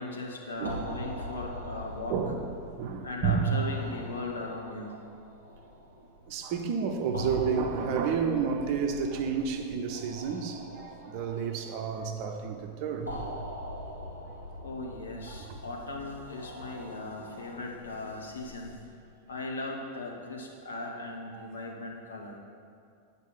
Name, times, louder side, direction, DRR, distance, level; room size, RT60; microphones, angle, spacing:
voice 1, 0.0-2.2 3.0-5.0 14.6-18.8 19.3-22.4, left 2 dB, 70° left, 0 dB, 1.3 m, -38 dB
sound 1, 0.6-18.7, equal, 90° left, 1.5 m, -43 dB
voice 2, 2.1-2.4 2.8-3.5 6.3-13.1 14.3-14.4 15.3-15.6 21.3-21.5, right 6 dB, 45° right, 4 dB, 0.8 m, -30 dB
8.4 x 4.5 x 7.0 m, 2.3 s
figure-of-eight pair, 90°, 0 cm